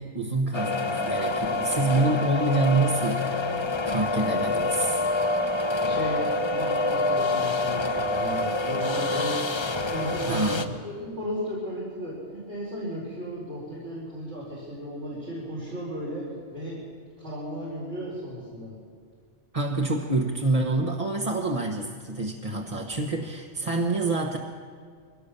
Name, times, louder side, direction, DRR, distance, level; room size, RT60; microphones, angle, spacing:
voice 1, 0.0-3.6 3.9-5.0 10.3-10.6 19.5-24.4, right 2 dB, 30° right, 0 dB, 1.3 m, -27 dB
sound 1, 0.5-10.7, left 2 dB, 25° left, 0.8 m, -27 dB
voice 2, 5.8-9.4 9.9-16.8 17.2-18.7, equal, 75° right, -7 dB, 5.2 m, -35 dB
22.0 x 17.5 x 7.0 m, 2.1 s
omnidirectional pair, 1.2 m